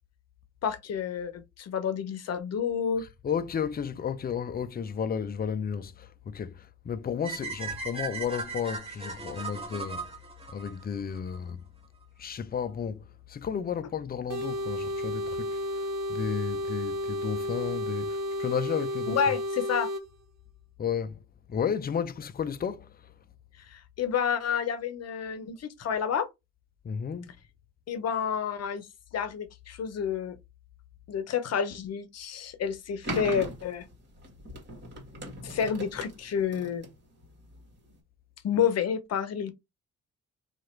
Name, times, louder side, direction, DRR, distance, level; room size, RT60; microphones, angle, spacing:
voice 1, 0.6-3.0 19.1-19.9 23.7-26.3 27.9-28.9 29.1-30.4 31.1-33.9 35.4-36.8 38.4-39.5, left 7 dB, 55° left, 0.8 m, -29 dB
voice 2, 3.0-10.2 10.5-11.6 12.2-19.4 20.8-23.1 26.8-27.3, left 7 dB, 30° left, 0.5 m, -33 dB
sound 1, 7.2-11.4, right 4 dB, 20° right, 1.5 m, -37 dB
sound 2, 14.3-20.0, left 1 dB, 60° right, 1.0 m, -32 dB
sound 3, 33.0-37.9, right 1 dB, 35° right, 1.6 m, -39 dB
2.9 x 2.5 x 4.3 m
cardioid pair, 90°, 30 cm